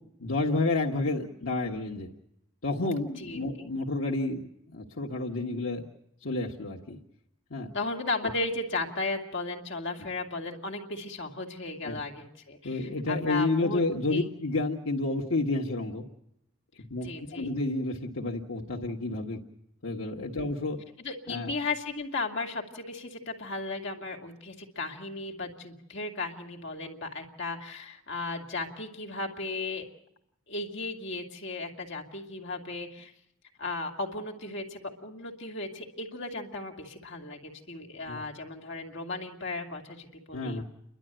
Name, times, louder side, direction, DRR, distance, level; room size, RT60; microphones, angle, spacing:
voice 1, 0.2-2.1 2.6-5.8 6.2-7.0 7.5-7.7 11.8-12.0 12.6-16.0 16.9-19.4 19.8-20.8 21.3-21.5 38.1-38.2 40.3-40.6, left 2 dB, 75° left, -3 dB, 1.7 m, -30 dB
voice 2, 3.2-3.7 7.7-13.8 14.1-14.3 17.0-17.5 20.3-20.5 21.0-29.8 30.5-33.1 33.6-40.6, left 3 dB, 55° left, 1 dB, 2.4 m, -35 dB
30.0 x 12.0 x 9.0 m, 0.82 s
head